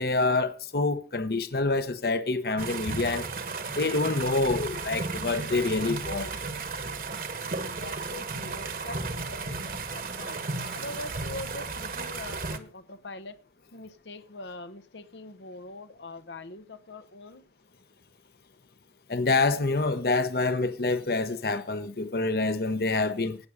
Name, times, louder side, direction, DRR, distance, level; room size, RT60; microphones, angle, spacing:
voice 1, 0.0-3.2 3.8-6.3 19.1-23.4, left 3 dB, 60° left, 1.0 m, -27 dB
sound 1, 2.6-12.6, right 3 dB, 50° right, 1.3 m, -34 dB
voice 2, 7.8-10.4 10.7-13.4 13.7-17.4, left 2 dB, 90° left, 1.1 m, -43 dB
18.0 x 7.1 x 5.0 m
head